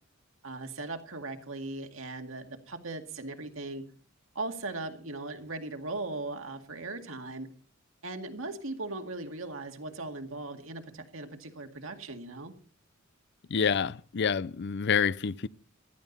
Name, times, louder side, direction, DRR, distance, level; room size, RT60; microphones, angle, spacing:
voice 1, 0.4-3.8 4.4-7.5 8.0-12.5, right 2 dB, 70° right, 2.1 m, -38 dB
voice 2, 13.5-15.5, left 6 dB, 60° left, 0.5 m, -27 dB
16.0 x 12.5 x 4.1 m
head